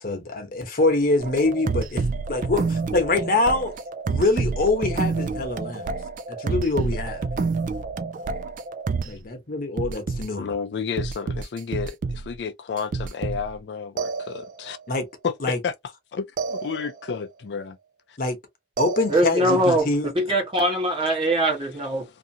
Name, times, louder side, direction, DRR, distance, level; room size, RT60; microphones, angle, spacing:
voice 1, 0.0-2.0 2.3-3.7 4.1-5.9 6.3-7.3 9.0-10.5 14.9-15.1 15.4-15.6 18.2-18.4 18.8-20.1, left 2 dB, 55° left, 1.0 m, -24 dB
sound 1, 1.2-9.2 9.8-10.2 11.0-12.4 12.8-13.6 14.0-14.8 16.4-17.2 18.8-19.6, right 4 dB, 50° right, 0.3 m, -28 dB
voice 2, 10.4-14.8 15.2-15.7 16.1-17.8 18.1-18.2 19.5-19.6, left 6 dB, 70° left, 0.4 m, -31 dB
voice 3, 19.1-22.0, right 1 dB, 30° right, 1.1 m, -22 dB
2.7 x 2.5 x 2.7 m
head